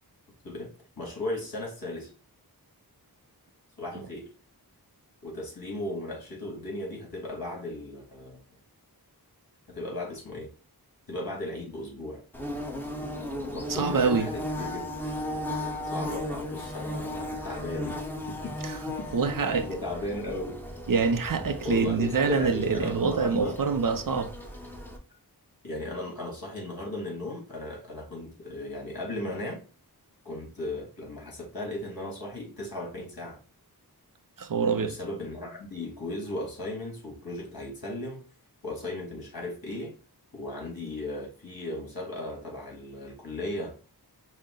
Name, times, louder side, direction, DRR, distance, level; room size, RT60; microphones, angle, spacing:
voice 1, 1.0-2.1 3.8-4.3 5.2-8.4 9.7-10.5 11.1-12.2 13.4-14.8 15.8-18.0 18.3-18.6 19.6-20.6 21.6-23.6 25.6-29.6 30.2-33.4 34.8-38.2 38.6-39.9 40.3-43.8, left 1 dB, 60° left, 2.0 m, -36 dB
Bird / Buzz, 12.3-25.0, left 1 dB, 5° left, 0.8 m, -36 dB
voice 2, 13.7-14.3 18.6-18.7 19.1-19.7 20.9-24.3 34.4-34.9, right 5 dB, 55° right, 0.5 m, -25 dB
5.4 x 2.1 x 3.6 m
wide cardioid pair, 75°, 40 cm